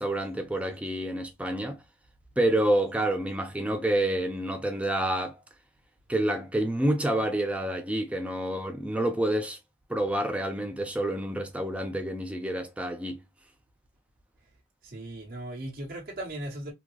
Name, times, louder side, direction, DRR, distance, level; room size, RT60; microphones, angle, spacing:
voice 1, 0.0-1.8 2.4-5.4 6.1-9.6 9.9-13.2, right 1 dB, 5° right, 0.4 m, -28 dB
voice 2, 14.8-16.7, right 1 dB, 45° right, 1.0 m, -37 dB
3.6 x 2.0 x 3.1 m
head